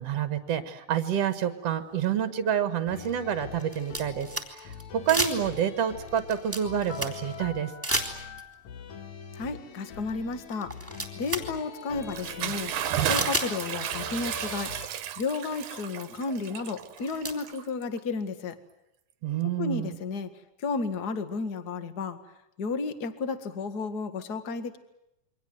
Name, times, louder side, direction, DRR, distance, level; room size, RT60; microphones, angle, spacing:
voice 1, 0.0-7.7 19.2-20.0, right 9 dB, 55° right, 9 dB, 2.3 m, -28 dB
sound 1, 2.0-2.1 3.0-4.8 5.1-5.7 6.1-7.3 7.8-8.5 9.9-10.0 10.5-11.5 11.8-11.9 13.1-13.5 14.8-14.9 15.2-15.3 15.8-15.9 16.8-17.3, right 1 dB, 5° right, 3.1 m, -31 dB
sound 2, 2.9-14.9, left 5 dB, 60° left, 3.1 m, -43 dB
voice 2, 9.3-10.9 11.2-12.7 13.0-14.7 15.2-18.6 19.4-20.3 20.6-22.2 22.6-24.8, left 4 dB, 35° left, 10 dB, 1.9 m, -32 dB
Bathtub (filling or washing) / Splash splatter, 12.0-18.0, right 10 dB, 70° right, 2.6 m, -33 dB
28.5 x 24.0 x 8.0 m, 0.86 s
omnidirectional pair, 3.7 m